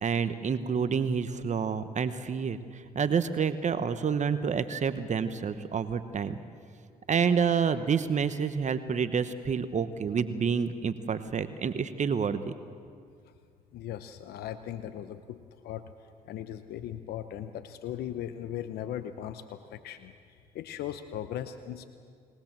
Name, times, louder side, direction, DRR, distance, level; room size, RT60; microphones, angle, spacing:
voice 1, 0.0-6.4 7.1-12.4, right 6 dB, 45° right, 11 dB, 1.1 m, -28 dB
voice 2, 13.7-15.4 15.6-15.8 16.2-21.8, left 10 dB, 80° left, 10 dB, 0.8 m, -38 dB
21.0 x 19.5 x 7.5 m, 2.2 s
supercardioid pair, 65°, 16 cm